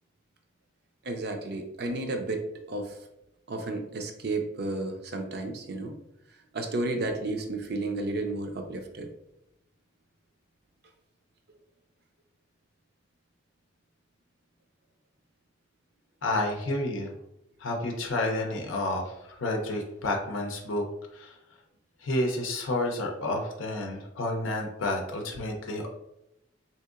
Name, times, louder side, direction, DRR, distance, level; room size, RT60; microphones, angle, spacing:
voice 1, 1.0-3.0 3.5-5.9 6.5-9.1, right 2 dB, 50° right, 5 dB, 0.5 m, -32 dB
voice 2, 16.2-17.1 17.6-20.8 21.1-21.4 22.0-26.0, left 2 dB, 75° left, 2 dB, 0.5 m, -30 dB
3.7 x 2.8 x 2.4 m, 0.84 s
head